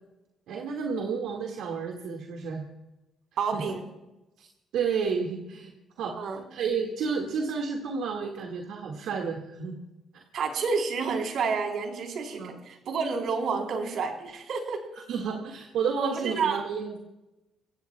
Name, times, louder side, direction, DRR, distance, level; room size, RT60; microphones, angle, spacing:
voice 1, 0.5-2.6 3.5-3.6 4.4-4.5 4.7-5.7 6.0-6.2 6.5-9.8 10.1-10.2 12.4-12.5 14.9-17.0, right 5 dB, 85° right, 1 dB, 1.8 m, -31 dB
voice 2, 3.4-3.9 6.1-6.4 10.3-14.9 16.0-16.6, right 5 dB, 70° right, 3 dB, 3.6 m, -29 dB
25.5 x 16.0 x 2.3 m, 0.98 s
cardioid pair, 90°, 0 cm